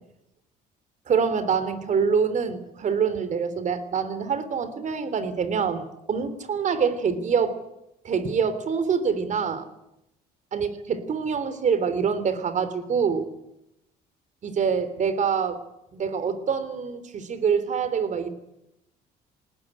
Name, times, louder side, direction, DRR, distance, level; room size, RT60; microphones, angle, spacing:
voice 1, 1.1-7.5 8.0-9.7 10.5-13.3 14.4-15.6 15.9-18.3, right 6 dB, 45° right, 13 dB, 3.4 m, -25 dB
20.5 x 19.0 x 10.0 m, 0.84 s
cardioid pair, 110°, 17 cm